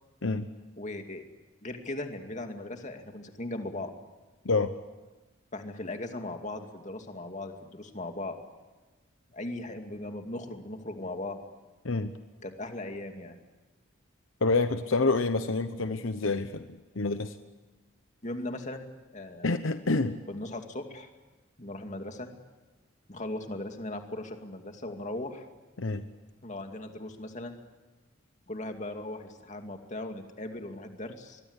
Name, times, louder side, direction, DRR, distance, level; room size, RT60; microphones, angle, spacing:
voice 1, 0.8-1.2 1.6-3.9 5.5-8.4 9.3-11.4 12.4-13.4 18.2-18.8 19.1-19.5 20.3-21.1 21.6-22.3 23.1-25.5 26.4-27.6 28.5-31.4, left 2 dB, 35° left, 5 dB, 2.5 m, -38 dB
voice 2, 14.4-17.3 19.4-20.2 25.8-26.1, left 3 dB, 75° left, 9 dB, 1.0 m, -27 dB
24.0 x 21.5 x 8.3 m, 1.2 s
head